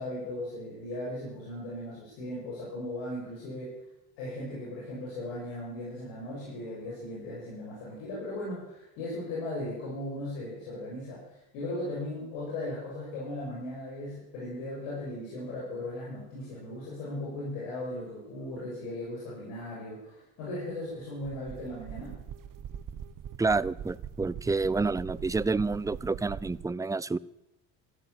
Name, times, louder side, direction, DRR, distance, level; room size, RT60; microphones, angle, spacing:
voice 1, 0.0-3.7 4.2-22.1, left 1 dB, 75° left, -6 dB, 7.4 m, -37 dB
sound 1, 20.4-26.7, right 8 dB, 45° right, 1.4 m, -43 dB
voice 2, 23.4-27.2, right 3 dB, 10° right, 19 dB, 0.5 m, -29 dB
14.0 x 13.0 x 7.3 m, 0.92 s
hypercardioid pair, 70°, 44 cm